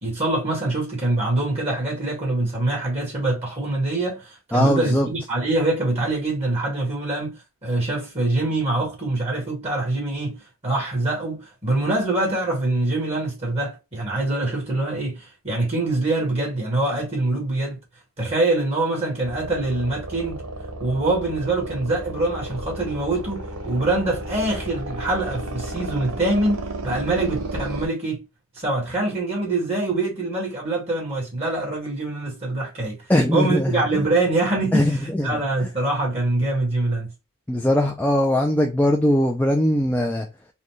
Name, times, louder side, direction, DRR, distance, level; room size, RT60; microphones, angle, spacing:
voice 1, 0.0-7.4 7.6-10.4 10.6-17.8 18.2-20.4 20.8-28.2 28.6-33.0 33.3-37.1, right 2 dB, 30° right, 1.8 m, -24 dB
voice 2, 4.5-5.1 33.1-34.0 34.7-35.3 37.5-40.3, left 1 dB, 5° left, 0.4 m, -20 dB
sound 1, 19.2-27.9, right 2 dB, 80° right, 1.0 m, -33 dB
4.1 x 2.3 x 3.1 m
head